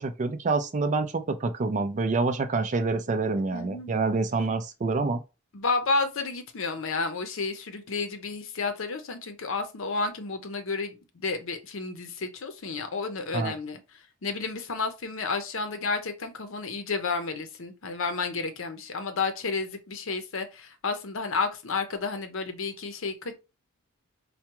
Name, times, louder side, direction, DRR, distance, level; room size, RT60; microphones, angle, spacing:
voice 1, 0.0-5.2 13.3-13.5, right 3 dB, 35° right, 0.4 m, -27 dB
voice 2, 3.5-3.9 5.5-23.4, left 4 dB, 60° left, 0.7 m, -31 dB
4.6 x 2.3 x 2.9 m
head